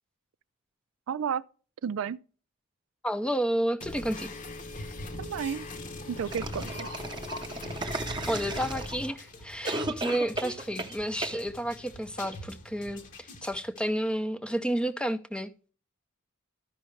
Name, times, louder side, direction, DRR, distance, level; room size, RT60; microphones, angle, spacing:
voice 1, 1.1-1.4 1.8-2.2 5.2-5.7 6.1-7.0, right 7 dB, 80° right, 0.4 m, -32 dB
voice 2, 3.0-4.4 8.3-15.5, right 1 dB, 5° left, 0.5 m, -31 dB
sound 1, 3.8-13.8, left 2 dB, 40° left, 0.9 m, -41 dB
sound 2, 5.3-13.2, left 1 dB, 65° left, 1.2 m, -53 dB
sound 3, 6.3-9.2 9.7-11.0 11.2-11.4, right 2 dB, 20° right, 0.8 m, -35 dB
13.0 x 5.6 x 3.1 m
head